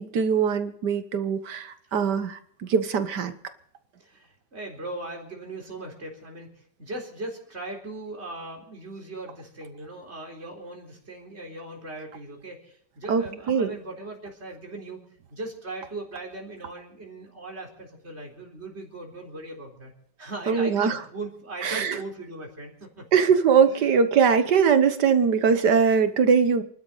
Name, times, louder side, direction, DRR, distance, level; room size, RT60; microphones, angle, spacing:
voice 1, 0.0-3.3 13.1-13.7 20.5-21.0 21.6-22.0 23.1-26.6, right 6 dB, 70° right, 10 dB, 1.8 m, -21 dB
voice 2, 4.0-15.0 15.3-19.9 20.2-23.1 23.6-23.9, right 2 dB, 35° right, 1 dB, 4.4 m, -39 dB
29.0 x 12.5 x 4.0 m, 0.63 s
omnidirectional pair, 1.9 m